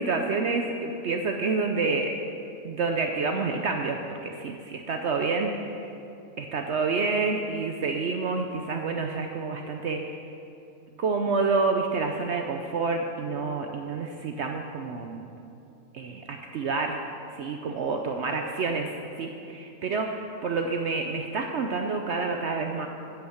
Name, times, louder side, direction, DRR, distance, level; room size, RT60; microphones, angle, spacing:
voice 1, 0.0-2.1 2.6-5.9 6.4-10.2 11.0-15.3 15.9-17.0 17.3-18.9 19.2-22.9, right 4 dB, 60° right, 3 dB, 0.8 m, -28 dB
10.5 x 5.8 x 7.8 m, 2.6 s
omnidirectional pair, 1.5 m